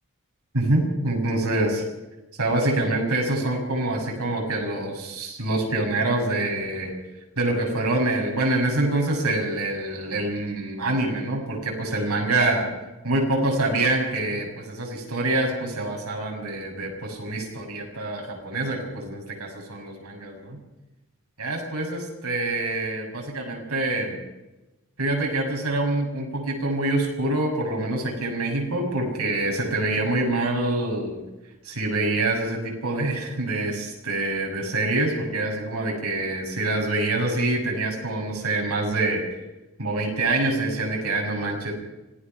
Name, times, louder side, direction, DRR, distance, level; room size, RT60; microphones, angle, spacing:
voice 1, 0.5-1.8 2.4-6.9 7.4-12.7 13.0-20.6 21.4-24.2 25.0-31.2 31.6-39.2 39.8-41.7, right 2 dB, 90° right, 0 dB, 6.9 m, -25 dB
26.0 x 17.5 x 6.0 m, 1.0 s
head